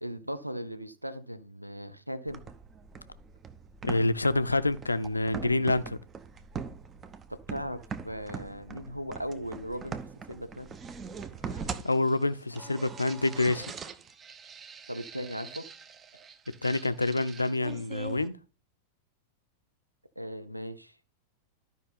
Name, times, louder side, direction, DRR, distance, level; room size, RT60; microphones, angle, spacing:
voice 1, 0.0-2.4 7.3-10.0 10.3-10.7 14.9-15.7 20.2-21.0, equal, 90° right, 0.7 m, -38 dB
sound 1, 2.3-18.3, right 5 dB, 25° right, 0.8 m, -42 dB
voice 2, 3.8-6.0 11.8-13.7 16.6-18.4, left 2 dB, 80° left, 0.5 m, -27 dB
12.0 x 5.4 x 4.0 m
figure-of-eight pair, 90°, 0 cm